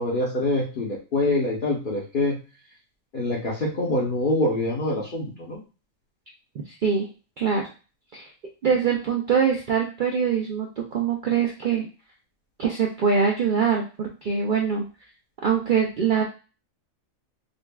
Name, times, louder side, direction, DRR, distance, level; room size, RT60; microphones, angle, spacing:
voice 1, 0.0-2.3 3.1-5.6, left 2 dB, 45° left, -5 dB, 0.9 m, -25 dB
voice 2, 6.7-7.1 7.4-7.7 8.1-8.3 8.6-11.9 12.6-14.8 15.4-16.2, right 6 dB, 65° right, 0 dB, 0.5 m, -23 dB
5.1 x 2.3 x 2.2 m, 0.33 s
omnidirectional pair, 1.4 m